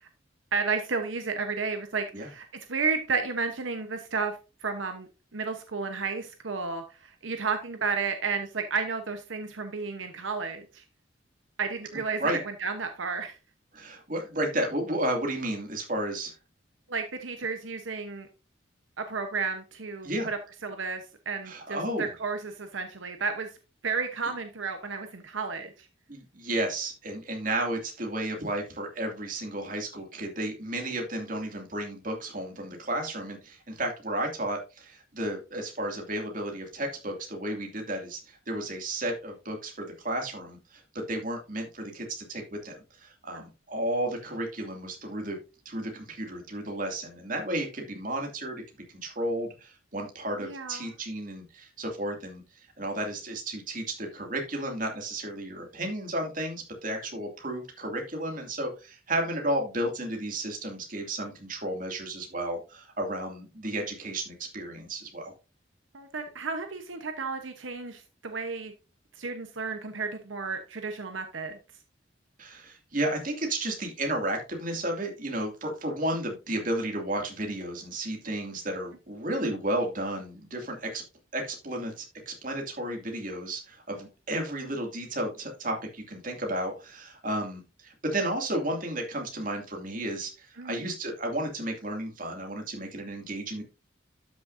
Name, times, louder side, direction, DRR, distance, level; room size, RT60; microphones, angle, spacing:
voice 1, 0.5-10.8 11.6-13.4 16.9-18.3 19.0-23.5 23.8-25.9 43.3-43.4 50.4-50.9 65.9-68.7 69.1-71.6 90.6-90.9, right 4 dB, 85° right, 6 dB, 1.0 m, -32 dB
voice 2, 13.7-16.3 20.0-20.3 21.4-22.1 26.1-45.4 45.6-48.6 48.9-52.4 52.8-65.3 72.4-81.0 81.3-93.6, right 1 dB, 45° right, 2 dB, 2.5 m, -33 dB
12.5 x 6.3 x 2.7 m, 0.30 s
head